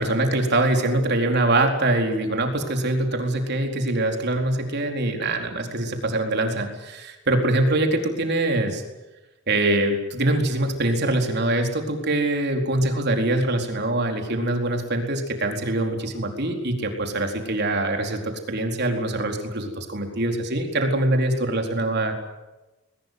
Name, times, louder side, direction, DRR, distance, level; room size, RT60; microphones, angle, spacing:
voice 1, 0.0-8.8 9.5-18.2 18.5-22.1, right 2 dB, 55° right, 3 dB, 4.3 m, -23 dB
21.5 x 20.5 x 9.5 m, 1.0 s
head